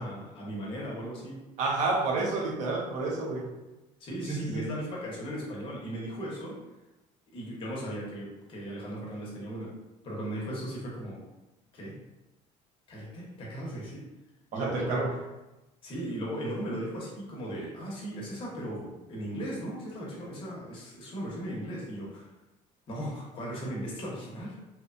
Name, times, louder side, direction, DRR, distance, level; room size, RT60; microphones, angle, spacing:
voice 1, 0.0-1.4 4.0-6.6 7.3-9.7 10.0-11.2 11.7-12.0 12.9-14.0 14.5-15.1 15.8-22.3 22.9-24.6, equal, 40° left, -4 dB, 0.8 m, -37 dB
voice 2, 1.6-3.5 4.3-4.7 14.5-15.1, right 3 dB, 60° right, 0 dB, 0.6 m, -29 dB
2.9 x 2.1 x 2.5 m, 1.0 s
cardioid pair, 155°, 14 cm